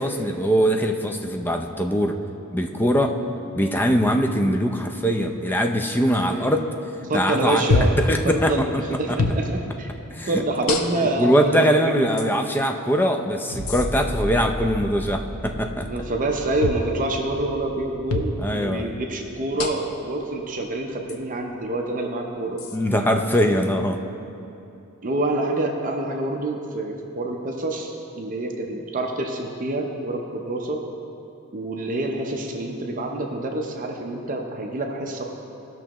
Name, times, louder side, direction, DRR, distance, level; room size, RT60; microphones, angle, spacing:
voice 1, 0.0-2.2 2.5-3.2 3.5-6.6 7.1-7.6 8.0-9.2 10.1-10.4 11.2-15.9 18.4-19.0 22.7-24.0, equal, 10° left, 4 dB, 0.4 m, -22 dB
voice 2, 7.1-8.0 8.2-8.7 9.0-9.9 10.3-12.3 15.9-22.6 25.0-30.8 31.5-35.2, right 2 dB, 40° right, 2 dB, 0.6 m, -27 dB
sound 1, 7.7-8.1 9.2-9.4 10.7-11.2 12.2-12.3 13.7-13.9 16.6-16.9 18.1-18.3 19.6-20.0 21.1-21.2 22.6-22.8, left 3 dB, 75° left, 0.7 m, -24 dB
sound 2, 13.5-20.5 21.0-21.1, equal, 35° left, 2.2 m, -35 dB
16.5 x 6.1 x 3.0 m, 2.8 s
head